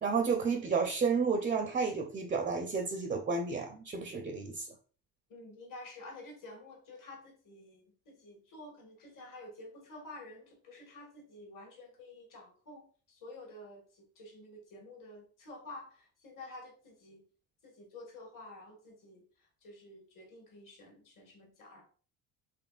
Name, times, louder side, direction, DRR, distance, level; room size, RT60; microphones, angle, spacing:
voice 1, 0.0-4.7, right 5 dB, 20° right, 0.4 m, -31 dB
voice 2, 5.3-12.8 13.1-17.2 17.6-19.2 19.6-21.8, left 2 dB, 50° left, 1.6 m, -50 dB
4.1 x 3.1 x 2.3 m
supercardioid pair, 80°, 39 cm